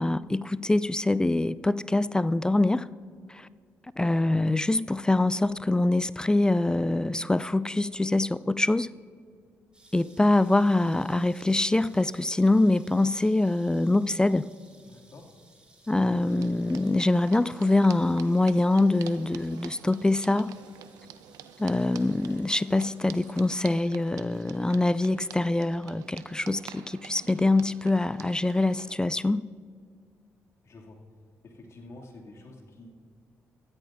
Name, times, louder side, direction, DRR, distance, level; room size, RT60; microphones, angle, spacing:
voice 1, 0.0-2.9 3.3-3.5 4.0-8.9 9.9-14.5 15.9-20.5 21.6-29.5, left 2 dB, 15° left, 0.3 m, -24 dB
sound 1, 9.7-23.8, right 2 dB, 15° right, 3.6 m, -60 dB
voice 2, 14.8-15.3 30.6-31.0 31.4-32.9, left 2 dB, 55° left, 2.5 m, -48 dB
sound 2, 16.3-29.0, right 10 dB, 80° right, 0.6 m, -48 dB
17.5 x 13.0 x 2.6 m
supercardioid pair, 55°, 6 cm